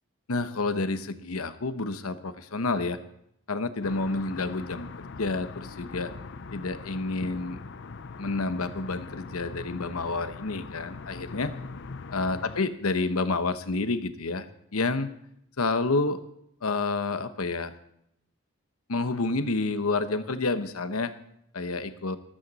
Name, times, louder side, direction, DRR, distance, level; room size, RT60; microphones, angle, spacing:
voice 1, 0.3-3.0 3.5-6.1 6.5-7.6 8.2-11.5 12.1-14.5 14.7-15.1 15.6-16.2 16.6-17.7 18.9-21.1 21.5-22.2, left 3 dB, 80° left, 10 dB, 1.0 m, -29 dB
sound 1, 3.8-12.6, left 4 dB, 55° left, 0.6 m, -41 dB
14.0 x 12.5 x 4.1 m, 0.76 s
head